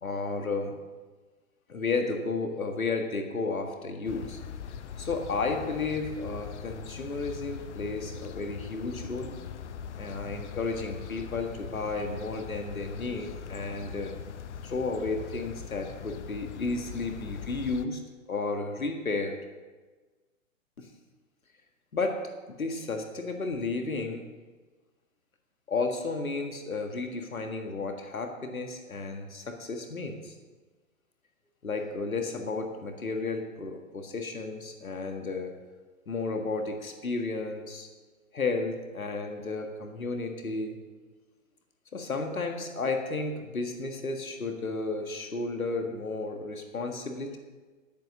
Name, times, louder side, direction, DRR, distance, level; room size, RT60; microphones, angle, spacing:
voice 1, 0.0-0.8 1.7-4.4 5.0-9.4 10.0-14.1 14.6-18.0 18.3-19.4 20.8-20.9 21.9-22.3 22.6-24.2 25.7-30.3 31.6-35.6 36.1-37.9 38.3-40.8 41.9-47.4, left 3 dB, 85° left, 5 dB, 1.7 m, -33 dB
sound 1, 4.0-17.8, left 7 dB, 55° left, 0.8 m, -41 dB
11.0 x 9.2 x 6.3 m, 1.3 s
figure-of-eight pair, 125°, 41 cm